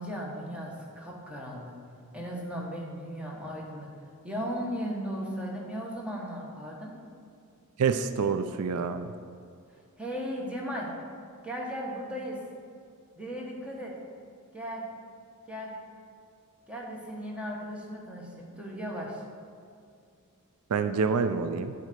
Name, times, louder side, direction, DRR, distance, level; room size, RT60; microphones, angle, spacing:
voice 1, 0.0-1.7 2.1-3.9 4.2-6.9 10.0-10.9 11.4-12.4 13.1-13.9 14.5-14.8 15.5-15.7 16.7-19.2, equal, 5° right, -3 dB, 1.4 m, -36 dB
voice 2, 7.8-9.1 20.7-21.7, right 5 dB, 80° right, 10 dB, 0.4 m, -27 dB
9.2 x 4.0 x 6.8 m, 2.4 s
head